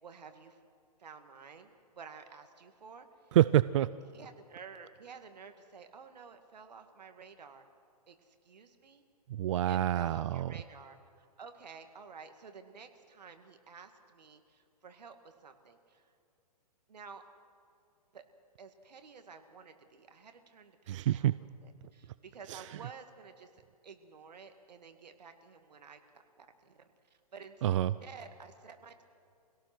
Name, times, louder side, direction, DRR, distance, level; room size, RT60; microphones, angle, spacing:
voice 1, 0.0-0.6 1.0-3.4 4.1-7.7 8.1-9.0 9.7-16.1 16.9-17.2 18.1-18.2 18.6-26.8 27.1-27.6 28.0-29.0, right 5 dB, 85° right, 7 dB, 2.2 m, -52 dB
voice 2, 3.3-3.9 9.3-10.5 20.9-21.4 22.5-22.6 27.6-27.9, right 12 dB, 50° right, 17 dB, 0.4 m, -27 dB
25.5 x 17.5 x 6.1 m, 2.5 s
hypercardioid pair, 145°, 21 cm